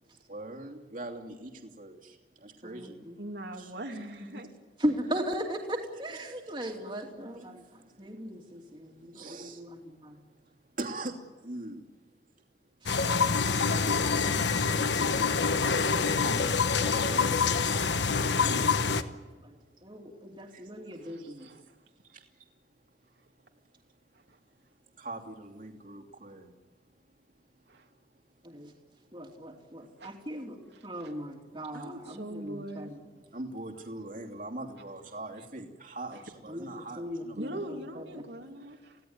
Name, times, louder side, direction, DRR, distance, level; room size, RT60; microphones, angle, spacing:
voice 1, 0.3-1.5 1.8-2.1 2.4-3.0 3.6-3.7 6.6-6.7 9.1-9.6 10.8-11.1 11.4-11.8 14.6-14.9 15.5-17.3 18.0-18.9 20.5-20.6 25.0-26.5 33.3-37.5, right 2 dB, 50° right, 2 dB, 2.8 m, -42 dB
voice 2, 2.6-3.2 4.2-4.4 4.8-10.2 12.8-12.9 16.2-16.4 17.1-17.3 19.4-19.6 19.8-21.5 28.4-28.7 29.1-33.0 36.5-38.2, equal, 25° right, 1 dB, 2.9 m, -38 dB
voice 3, 3.2-4.5 21.0-21.7 24.3-24.4 27.7-27.9 30.0-30.1 30.7-31.1 31.7-33.2 36.1-36.2 37.4-39.0, right 1 dB, 80° right, 2 dB, 2.7 m, -42 dB
sound 1, 12.9-19.0, left 5 dB, 85° left, 1.2 m, -26 dB
30.0 x 17.0 x 9.6 m, 1.3 s
head